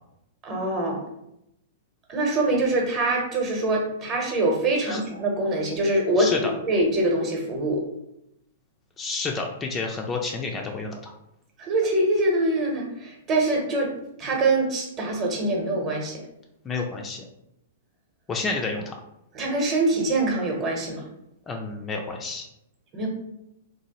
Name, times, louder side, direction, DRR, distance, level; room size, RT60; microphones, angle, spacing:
voice 1, 0.4-1.0 2.1-7.8 11.6-13.9 14.2-16.2 19.3-21.0 22.9-23.1, right 2 dB, 30° right, 0 dB, 0.8 m, -24 dB
voice 2, 6.2-6.5 9.0-11.1 16.6-17.2 18.3-19.0 21.5-22.5, left 3 dB, 20° left, 1 dB, 0.3 m, -30 dB
2.9 x 2.2 x 2.9 m, 0.83 s
figure-of-eight pair, 110°, 0 cm